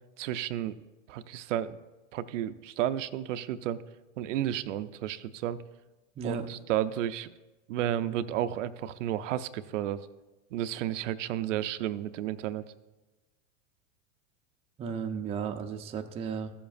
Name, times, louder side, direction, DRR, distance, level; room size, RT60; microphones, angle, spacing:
voice 1, 0.2-0.8 1.1-1.8 2.1-3.8 4.2-5.6 6.2-7.3 7.7-10.0 10.5-12.6, right 12 dB, 75° right, 12 dB, 0.5 m, -32 dB
voice 2, 6.2-6.5 14.8-16.5, right 6 dB, 15° right, 5 dB, 0.4 m, -34 dB
13.5 x 7.1 x 2.5 m, 1.1 s
hypercardioid pair, 115°, 38 cm